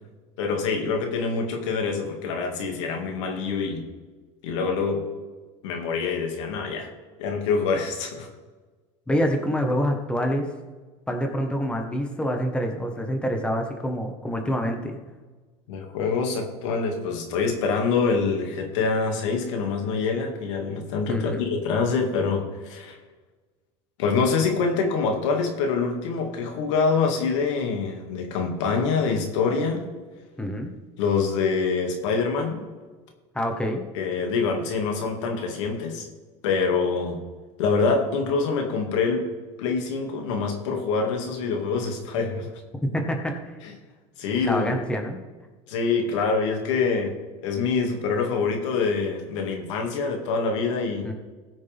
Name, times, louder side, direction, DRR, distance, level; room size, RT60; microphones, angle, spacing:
voice 1, 0.4-3.8 4.4-5.0 5.6-6.9 7.2-8.3 15.7-23.0 24.0-29.8 31.0-32.6 33.9-36.1 36.4-37.2 37.6-39.2 39.6-42.5 44.2-44.7 45.7-47.1 47.4-51.1, left 4 dB, 85° left, 3 dB, 2.3 m, -25 dB
voice 2, 9.1-10.5 11.1-15.0 21.1-21.4 30.4-30.7 33.3-33.8 42.8-43.6 44.4-45.2 51.0-51.1, equal, 5° left, 3 dB, 1.5 m, -26 dB
19.5 x 6.6 x 3.6 m, 1.3 s
supercardioid pair, 130°, 15 cm